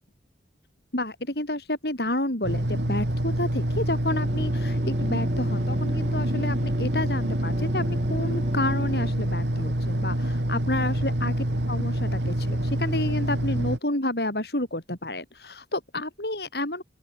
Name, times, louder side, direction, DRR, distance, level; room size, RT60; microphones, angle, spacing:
voice 1, 0.9-11.4 11.7-16.8, left 1 dB, 65° left, 7.4 m, -30 dB
sound 1, 2.4-13.8, right 1 dB, 85° right, 3.1 m, -26 dB
sound 2, 4.1-9.1, equal, 40° right, 6.8 m, -36 dB
open air
head